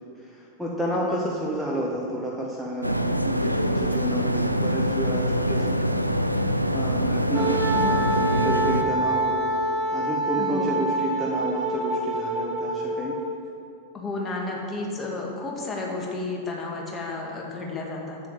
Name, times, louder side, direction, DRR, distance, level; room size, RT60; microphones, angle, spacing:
voice 1, 0.1-5.7 6.7-9.5 9.9-13.2, right 1 dB, ahead, -4 dB, 1.2 m, -30 dB
voice 2, 0.9-1.2 7.7-8.1 10.4-10.9 13.9-18.2, left 3 dB, 20° left, -1 dB, 2.0 m, -32 dB
sound 1, 2.8-8.8, equal, 90° right, 0.4 m, -24 dB
Wind instrument woodwind instrument, 7.3-13.3, right 1 dB, 15° right, 2.6 m, -26 dB
7.8 x 7.7 x 7.3 m, 2.4 s
figure-of-eight pair, 90°, 0 cm